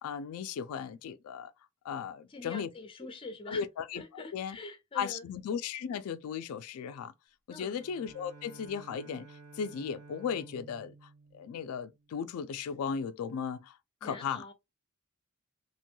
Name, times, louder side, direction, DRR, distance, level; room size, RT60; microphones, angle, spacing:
voice 1, 0.0-1.5 1.8-2.7 3.5-4.6 5.0-7.1 7.5-14.4, left 7 dB, 85° left, 0.3 m, -36 dB
voice 2, 2.3-3.6 3.9-5.3 7.5-7.8 14.0-14.5, left 2 dB, 25° left, 0.5 m, -44 dB
Bowed string instrument, 7.7-12.4, right 3 dB, 80° right, 0.7 m, -53 dB
3.0 x 2.2 x 2.9 m
head